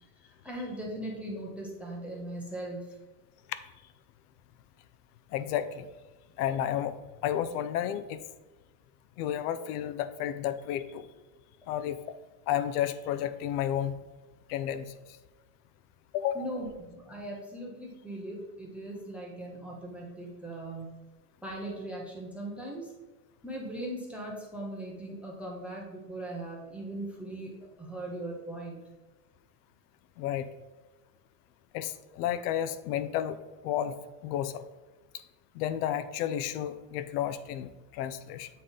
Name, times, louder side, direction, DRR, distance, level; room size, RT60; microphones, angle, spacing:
voice 1, 0.4-2.9 16.3-20.9 21.4-22.9 23.4-28.8, right 1 dB, 5° right, -3 dB, 0.5 m, -39 dB
voice 2, 5.3-5.9 6.4-6.9 7.2-8.2 9.2-11.1 11.7-12.0 12.5-13.9 14.5-14.9 16.1-16.5 30.2-30.5 31.7-33.4 33.6-34.0 34.2-34.6 35.6-38.5, left 10 dB, 75° left, 12 dB, 0.6 m, -31 dB
8.3 x 4.0 x 3.8 m, 1.2 s
cardioid pair, 170°, 47 cm